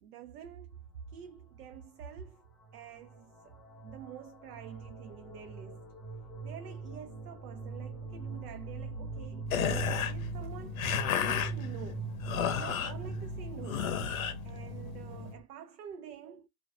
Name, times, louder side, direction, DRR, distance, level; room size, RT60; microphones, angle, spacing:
voice 1, 0.0-0.8 1.1-2.4 2.7-3.5 3.8-5.8 6.4-10.8 11.1-12.1 12.4-13.9 14.4-16.5, right 8 dB, 65° right, 0.6 m, -47 dB
sound 1, 2.1-2.3 2.6-15.4, right 4 dB, 5° left, 0.8 m, -41 dB
sound 2, 9.5-15.3, left 8 dB, 55° left, 0.7 m, -34 dB
2.4 x 2.2 x 2.3 m
hypercardioid pair, 150°, 49 cm